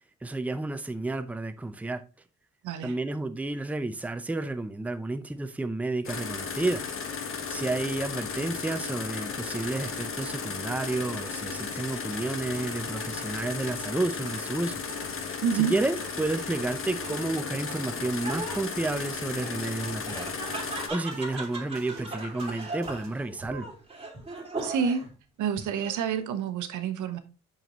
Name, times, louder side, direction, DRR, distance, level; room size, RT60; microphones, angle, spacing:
voice 1, 0.2-2.0 2.8-6.8 7.2-14.8 15.2-20.3 20.9-23.7, right 2 dB, 5° right, 0.6 m, -31 dB
voice 2, 2.6-2.9 15.4-15.7 24.6-25.0 25.4-27.2, right 7 dB, 80° right, 1.0 m, -28 dB
sound 1, 6.0-20.9, left 5 dB, 45° left, 1.3 m, -35 dB
sound 2, 9.5-23.3, right 8 dB, 60° right, 1.2 m, -50 dB
Laughter, 16.7-25.1 25.6-26.2, right 2 dB, 20° right, 2.4 m, -39 dB
6.7 x 6.2 x 3.0 m
cardioid pair, 90°, 30 cm